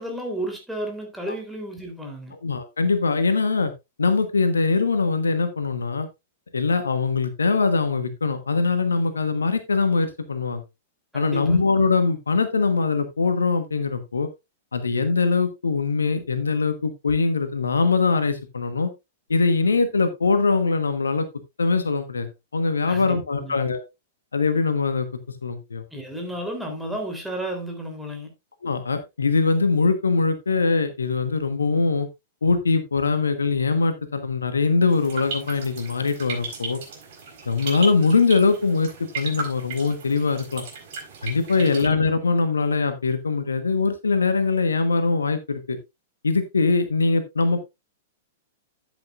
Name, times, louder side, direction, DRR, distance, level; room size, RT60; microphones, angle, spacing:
voice 1, 0.0-2.3 11.1-11.6 22.9-23.6 25.9-28.3 41.6-41.8, right 1 dB, 5° right, 3.3 m, -32 dB
voice 2, 2.4-3.7 4.0-6.1 6.5-10.6 11.1-14.3 14.7-18.9 19.3-21.3 21.6-23.8 24.3-25.1 25.4-25.8 28.6-32.1 32.4-36.8 37.5-38.9 39.1-40.6 41.2-45.8 46.2-47.6, left 4 dB, 75° left, 1.2 m, -22 dB
sound 1, 34.9-41.9, right 4 dB, 50° right, 4.4 m, -36 dB
12.0 x 8.3 x 2.5 m
figure-of-eight pair, 100°, 0 cm